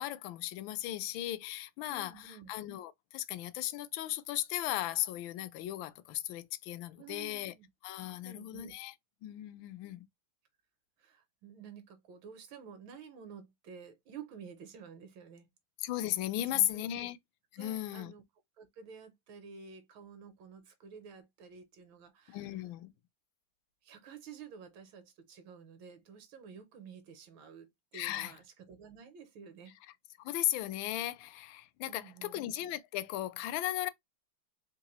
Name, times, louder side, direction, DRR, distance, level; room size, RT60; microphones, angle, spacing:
voice 1, 0.0-7.5 7.8-8.9 9.2-10.0 15.8-17.2 17.5-18.1 22.3-22.9 27.9-28.3 30.2-33.9, left 14 dB, 75° left, 1.2 m, -36 dB
voice 2, 1.9-2.5 7.0-7.7 8.2-8.7 11.0-15.5 16.4-17.1 17.6-18.2 18.6-22.6 23.8-29.8 31.8-32.5, right 6 dB, 75° right, 1.4 m, -51 dB
3.8 x 2.8 x 2.9 m
omnidirectional pair, 2.3 m